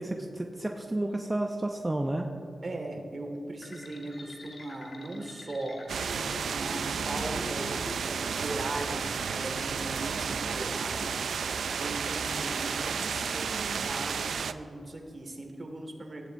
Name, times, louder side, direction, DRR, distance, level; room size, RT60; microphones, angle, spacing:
voice 1, 0.0-2.3, right 1 dB, 20° right, 3 dB, 0.7 m, -31 dB
voice 2, 2.6-5.8 6.5-11.2 11.7-16.3, right 2 dB, 50° right, 3 dB, 2.0 m, -39 dB
sound 1, 3.6-13.8, left 2 dB, 70° left, 1.6 m, -47 dB
sound 2, 5.9-14.5, right 6 dB, 85° right, 0.3 m, -32 dB
15.5 x 10.5 x 2.7 m, 2.7 s
cardioid pair, 45°, 0 cm